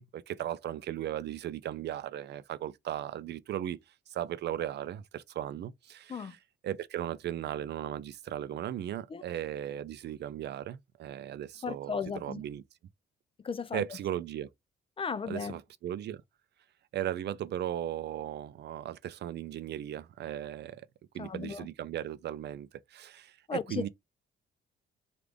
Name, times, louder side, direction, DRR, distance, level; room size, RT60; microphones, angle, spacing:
voice 1, 0.0-3.8 4.1-12.6 13.7-14.5 15.2-16.2 16.9-20.9 21.1-23.9, right 11 dB, 60° right, 0.4 m, -37 dB
voice 2, 11.6-12.4 13.4-13.8 15.0-15.6 21.2-21.7 23.5-23.9, left 5 dB, 30° left, 0.3 m, -35 dB
3.3 x 2.4 x 3.4 m
cardioid pair, 90°, 20 cm